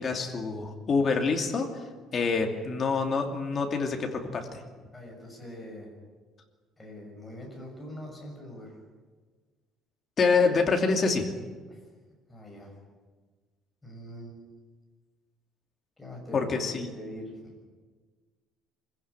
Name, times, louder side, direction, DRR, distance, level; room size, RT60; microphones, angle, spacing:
voice 1, 0.0-1.7 2.1-4.6 10.2-11.3 16.3-16.9, left 4 dB, 30° left, 3 dB, 2.7 m, -26 dB
voice 2, 4.9-5.9 6.8-8.8 11.7-11.8 12.3-12.7 13.8-14.5 16.0-17.7, equal, 10° left, -1 dB, 6.7 m, -43 dB
25.5 x 16.0 x 9.8 m, 1.4 s
cardioid pair, 170°, 0 cm